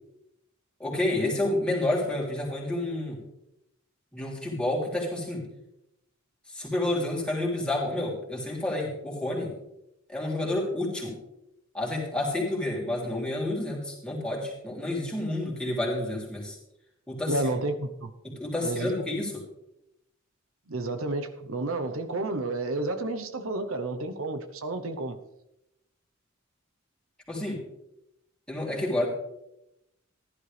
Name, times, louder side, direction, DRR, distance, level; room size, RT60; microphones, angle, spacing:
voice 1, 0.8-3.2 4.1-5.5 6.5-9.5 10.1-11.2 11.7-16.6 17.1-17.4 18.2-19.4 27.3-27.6 28.5-29.1, left 1 dB, 5° left, -4 dB, 3.4 m, -29 dB
voice 2, 17.3-18.1 18.6-18.9 20.7-25.2, right 2 dB, 90° right, 8 dB, 1.0 m, -31 dB
15.0 x 11.5 x 3.4 m, 0.85 s
head